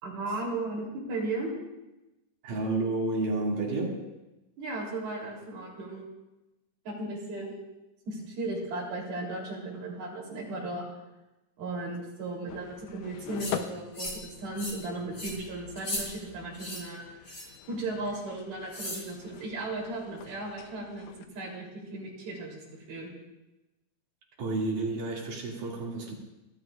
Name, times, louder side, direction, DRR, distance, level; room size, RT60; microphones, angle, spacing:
voice 1, 0.0-1.5 4.6-6.1 6.9-7.7 8.1-10.9 11.6-17.0 17.4-23.1, right 2 dB, 80° right, -3 dB, 5.2 m, -36 dB
voice 2, 2.4-4.0 24.4-26.1, right 2 dB, 65° right, -3 dB, 4.0 m, -30 dB
sound 1, 12.5-21.3, left 10 dB, 75° left, 2.0 m, -44 dB
sound 2, 13.4-13.6 13.9-14.3 14.6-14.8 15.1-15.3 15.8-16.0 16.5-16.8 17.3-17.6 18.7-19.0, left 1 dB, 30° left, 5.3 m, -36 dB
29.0 x 12.5 x 2.4 m, 1.0 s
omnidirectional pair, 4.2 m